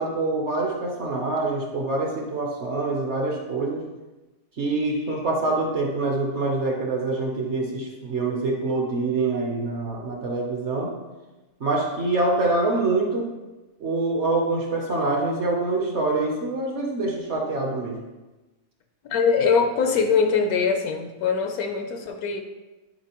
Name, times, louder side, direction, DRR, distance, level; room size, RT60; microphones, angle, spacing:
voice 1, 0.0-3.8 4.6-11.0 11.6-13.3 13.8-18.0, right 2 dB, 55° right, 0 dB, 0.9 m, -25 dB
voice 2, 19.1-22.4, left 5 dB, 70° left, 5 dB, 1.0 m, -22 dB
10.0 x 3.8 x 2.9 m, 1.1 s
omnidirectional pair, 1.7 m